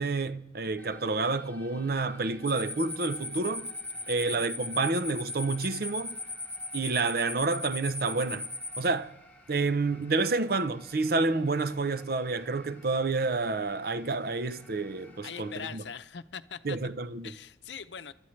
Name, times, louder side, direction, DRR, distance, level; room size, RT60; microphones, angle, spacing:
voice 1, 0.0-3.7 4.1-6.2 6.7-8.5 8.8-9.1 9.5-15.8 16.6-17.3, right 3 dB, 55° right, 0.7 m, -29 dB
sound 1, 0.8-15.7, left 1 dB, 10° left, 1.3 m, -55 dB
sound 2, 2.4-8.9, left 2 dB, 10° right, 1.5 m, -37 dB
voice 2, 3.9-4.4 15.2-16.8 17.2-18.1, left 7 dB, 75° left, 0.7 m, -42 dB
29.0 x 13.0 x 3.2 m
head